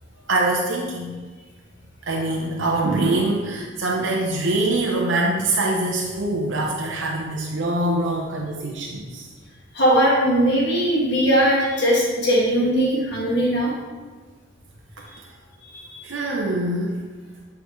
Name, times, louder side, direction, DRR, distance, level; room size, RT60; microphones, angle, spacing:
voice 1, 0.3-1.1 2.1-9.3 16.0-17.0, right 2 dB, 75° right, -2 dB, 0.7 m, -24 dB
voice 2, 9.7-13.7 15.6-16.0, equal, 60° left, -4 dB, 1.7 m, -20 dB
8.4 x 4.8 x 3.1 m, 1.4 s
head